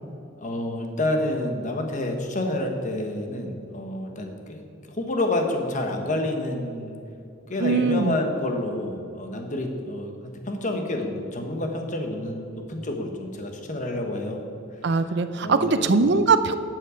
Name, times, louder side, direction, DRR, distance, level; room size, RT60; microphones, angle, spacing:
voice 1, 0.4-7.0 7.5-14.4 15.4-16.3, left 1 dB, 40° left, 4 dB, 1.2 m, -29 dB
voice 2, 7.6-8.2 14.8-16.6, right 4 dB, 60° right, 11 dB, 0.5 m, -21 dB
12.0 x 7.7 x 5.1 m, 2.6 s
head